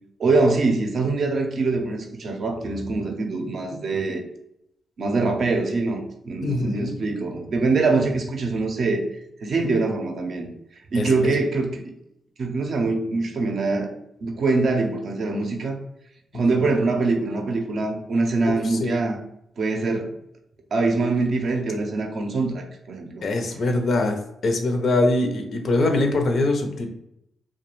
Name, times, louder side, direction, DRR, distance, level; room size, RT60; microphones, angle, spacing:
voice 1, 0.2-4.2 5.0-9.0 9.4-10.5 10.9-11.8 12.4-13.9 14.2-15.8 16.3-19.2 19.6-20.1 20.7-23.3, right 3 dB, 65° right, 3 dB, 0.5 m, -23 dB
voice 2, 6.4-6.9 10.9-11.3 16.3-16.4 18.4-18.9 23.2-24.2 24.4-26.9, left 2 dB, 65° left, 4 dB, 0.4 m, -23 dB
2.3 x 2.2 x 2.9 m, 0.80 s
supercardioid pair, 55°, 0 cm